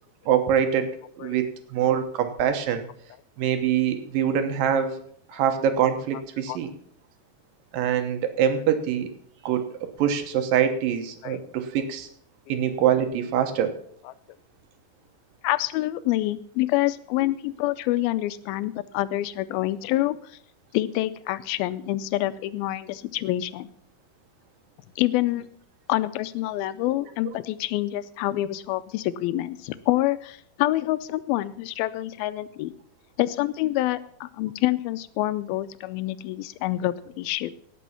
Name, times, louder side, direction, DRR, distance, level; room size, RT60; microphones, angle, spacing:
voice 1, 0.3-0.9 1.2-2.9 3.4-4.9 5.3-6.7 7.7-9.1 9.4-12.1 12.5-13.7, right 9 dB, 75° right, 7 dB, 2.7 m, -24 dB
voice 2, 15.4-20.2 20.7-23.7 25.0-25.5 25.9-32.7 33.2-37.5, left 16 dB, 90° left, 15 dB, 2.5 m, -27 dB
17.5 x 6.2 x 5.7 m, 0.63 s
omnidirectional pair, 4.2 m